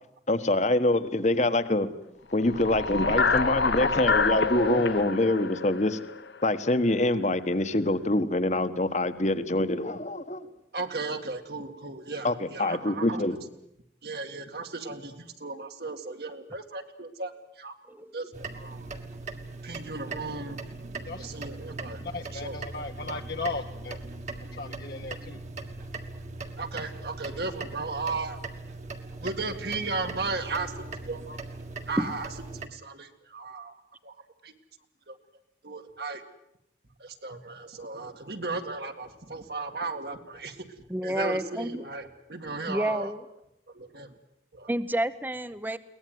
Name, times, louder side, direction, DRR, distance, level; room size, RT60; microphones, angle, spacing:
voice 1, 0.3-1.9 2.3-6.0 6.4-10.5 12.2-13.4, left 1 dB, 40° left, 11 dB, 1.3 m, -25 dB
sound 1, 2.4-6.7, left 4 dB, 85° left, 1.2 m, -27 dB
voice 2, 3.0-3.6 10.7-13.4 14.0-17.7 18.1-18.9 19.6-20.6 21.2-22.0 22.3-22.6 26.6-28.4 29.2-31.4 31.9-32.3 32.5-33.8 34.0-34.1 34.4-34.5 35.1-35.2 35.6-36.2 37.0-40.7 41.0-43.1 43.7-44.1 44.5-44.7, right 3 dB, 65° right, 6 dB, 2.1 m, -36 dB
sound 2, 18.3-32.7, right 3 dB, 40° right, 1.8 m, -40 dB
voice 3, 22.0-24.0 24.5-25.4, left 3 dB, 60° left, 3 dB, 1.1 m, -36 dB
voice 4, 40.9-41.8 42.7-43.2 44.7-45.8, right 1 dB, 10° right, 14 dB, 0.8 m, -29 dB
22.5 x 18.5 x 9.4 m, 0.80 s
head